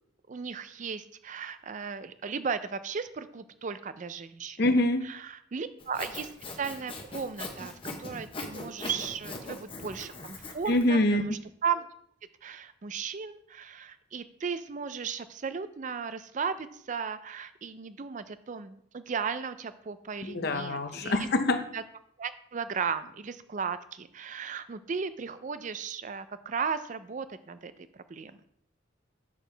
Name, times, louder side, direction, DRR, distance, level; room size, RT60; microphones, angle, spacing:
voice 1, 0.3-4.6 5.0-11.9 12.4-21.3 21.7-21.8 22.2-28.4, right 6 dB, 40° right, 12 dB, 0.4 m, -36 dB
voice 2, 4.6-5.1 10.7-11.2 20.3-21.6, left 1 dB, 55° left, 8 dB, 0.7 m, -25 dB
Sawing, 5.8-10.9, left 2 dB, 25° left, 0.9 m, -41 dB
7.0 x 6.3 x 3.3 m, 0.67 s
head